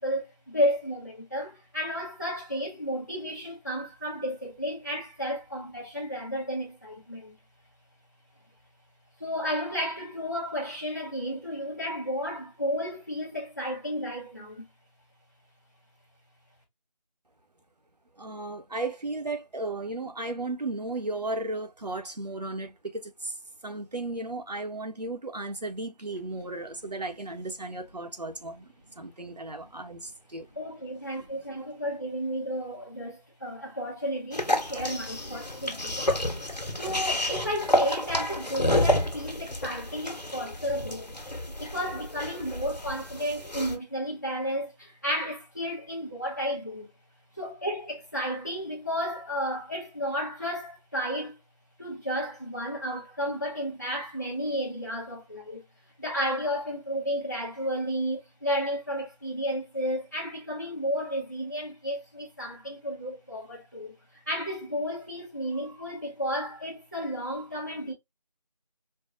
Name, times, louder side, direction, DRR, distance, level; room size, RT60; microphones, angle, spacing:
voice 1, 0.0-7.4 9.2-14.7 26.4-26.5 29.6-29.7 30.5-36.1 36.8-41.1 41.6-46.9 47.4-51.4 51.8-55.6 56.0-67.9, equal, 25° left, 1.0 m, -32 dB
voice 2, 18.2-23.3 23.6-30.5, right 2 dB, 70° right, 0.9 m, -35 dB
sound 1, 34.3-43.8, left 1 dB, 80° left, 1.2 m, -30 dB
4.5 x 2.2 x 2.6 m
figure-of-eight pair, 175°, 21 cm